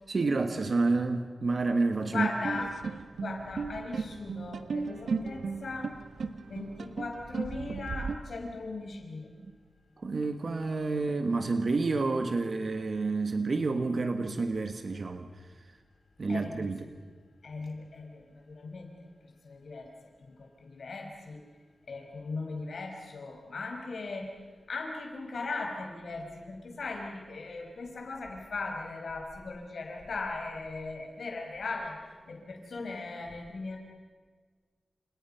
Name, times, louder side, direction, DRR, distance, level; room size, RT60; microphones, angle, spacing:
voice 1, 0.1-2.3 9.4-9.5 10.0-15.3 16.2-16.8, right 3 dB, 50° right, 7 dB, 1.4 m, -29 dB
voice 2, 2.1-2.8 3.2-6.0 6.5-9.3 16.3-16.7 17.4-18.9 19.4-19.9 20.2-21.4 21.9-24.3 24.7-32.0 32.3-33.8, left 3 dB, 70° left, 2 dB, 5.5 m, -38 dB
sound 1, 2.4-8.1, right 5 dB, 90° right, 1.2 m, -36 dB
29.5 x 28.0 x 5.8 m, 1.5 s
wide cardioid pair, 115°, 0 cm